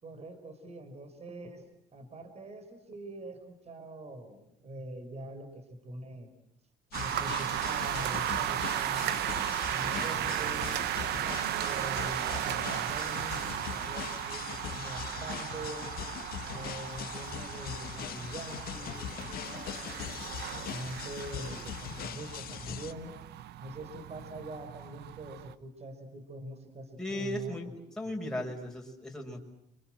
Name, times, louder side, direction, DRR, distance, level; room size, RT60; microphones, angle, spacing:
voice 1, 0.0-1.7 1.9-6.3 7.0-9.2 9.7-10.9 11.3-15.9 16.5-20.0 20.6-23.1 23.6-27.7 28.0-28.1, right 1 dB, 40° right, 9 dB, 5.2 m, -44 dB
sound 1, 6.9-22.9, left 10 dB, 60° left, 1.8 m, -41 dB
sound 2, 6.9-25.5, right 12 dB, 75° right, 1.1 m, -35 dB
voice 2, 10.0-10.9 27.0-27.7 28.0-29.4, left 1 dB, 5° left, 0 dB, 5.9 m, -37 dB
29.0 x 26.0 x 7.8 m, 0.76 s
cardioid pair, 110°, 17 cm